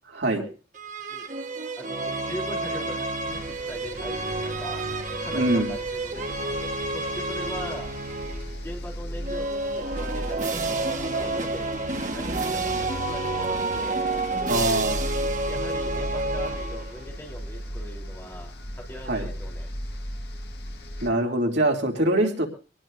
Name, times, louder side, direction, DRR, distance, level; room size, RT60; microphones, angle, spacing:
sound 1, 0.7-8.6 9.2-17.1, right 2 dB, 45° right, 1.4 m, -29 dB
voice 1, 1.8-4.8 5.2-7.9 8.6-11.7 12.1-14.2 15.5-18.5 18.9-19.7, equal, 15° left, 0 dB, 3.6 m, -40 dB
sound 2, 3.3-21.1, equal, 65° left, 1.7 m, -37 dB
voice 2, 5.3-5.7 14.5-15.1 19.1-19.3 21.0-22.5, right 1 dB, 75° right, 1 dB, 2.8 m, -23 dB
24.5 x 19.0 x 2.6 m, 0.36 s
head